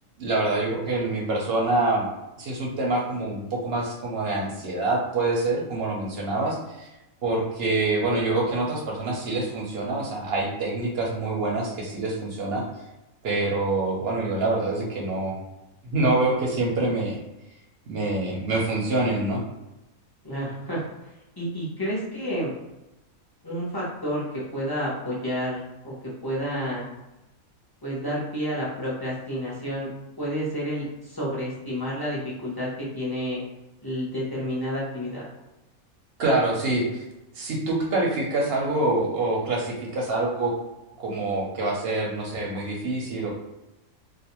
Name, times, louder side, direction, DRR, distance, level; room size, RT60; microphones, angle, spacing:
voice 1, 0.2-2.0 2.4-6.9 7.2-12.6 13.2-15.3 15.8-17.2 17.9-19.4 36.2-37.0 37.3-40.5 41.0-43.3, right 2 dB, 60° right, -2 dB, 0.7 m, -26 dB
voice 2, 20.2-20.8 21.4-22.5 23.4-24.2 24.5-25.9 26.2-26.8 27.8-29.9 30.2-33.4 33.8-35.2, equal, 25° left, -7 dB, 0.5 m, -30 dB
2.4 x 2.1 x 2.9 m, 0.97 s
omnidirectional pair, 1.4 m